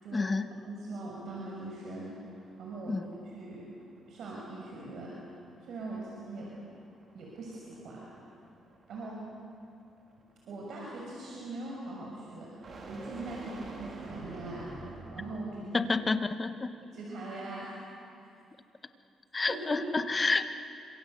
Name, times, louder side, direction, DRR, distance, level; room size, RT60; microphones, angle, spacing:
voice 1, 0.1-0.5 2.9-3.0 15.7-16.8 19.3-20.5, left 3 dB, 25° left, 9 dB, 1.5 m, -29 dB
voice 2, 0.6-3.0 3.3-3.6 4.1-5.1 5.6-6.5 7.1-8.1 8.9-9.2 10.5-14.7 15.1-15.9 16.9-17.8 18.2-18.3 19.5-19.8, right 2 dB, 65° right, -3 dB, 6.3 m, -41 dB
sound 1, 1.1-15.6, right 2 dB, 45° right, 4.6 m, -50 dB
27.5 x 26.5 x 8.2 m, 2.6 s
cardioid pair, 100°, 0 cm